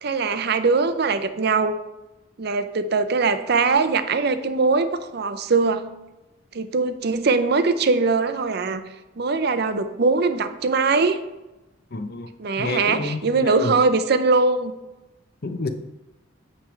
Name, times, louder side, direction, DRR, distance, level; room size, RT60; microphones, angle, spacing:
voice 1, 0.0-1.7 2.4-5.9 6.5-8.8 9.2-11.2 12.4-14.7, right 4 dB, 50° right, 10 dB, 0.5 m, -21 dB
voice 2, 11.9-12.3 12.6-13.8 15.4-15.7, left 3 dB, 50° left, 8 dB, 0.6 m, -29 dB
8.8 x 3.4 x 6.3 m, 1.0 s
head